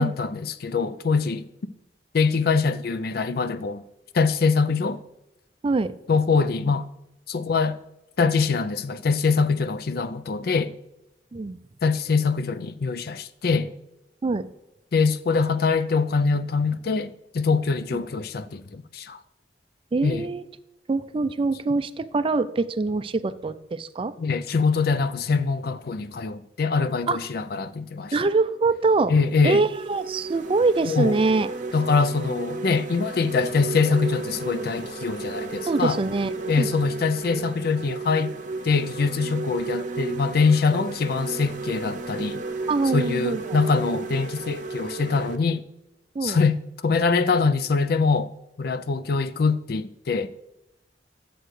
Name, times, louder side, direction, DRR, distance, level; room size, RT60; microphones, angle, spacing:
voice 1, 0.0-1.4 2.1-3.8 4.1-5.0 6.1-6.9 7.3-7.8 8.2-10.7 11.8-13.7 14.9-19.2 20.0-20.3 24.2-28.1 29.1-29.6 30.9-31.2 31.7-36.0 36.5-38.3 38.6-42.4 42.9-45.6 46.2-48.3 48.6-50.3, left 4 dB, 60° left, 0.5 m, -23 dB
voice 2, 5.6-5.9 11.3-11.6 14.2-14.5 17.9-18.0 19.9-20.4 20.9-24.1 27.1-27.2 28.1-29.1 29.4-31.5 35.7-36.7 42.7-43.6 46.2-46.4, right 3 dB, 30° right, 0.4 m, -24 dB
sound 1, 28.4-28.6 29.2-45.4, right 3 dB, 45° right, 0.7 m, -33 dB
11.0 x 7.7 x 3.2 m
head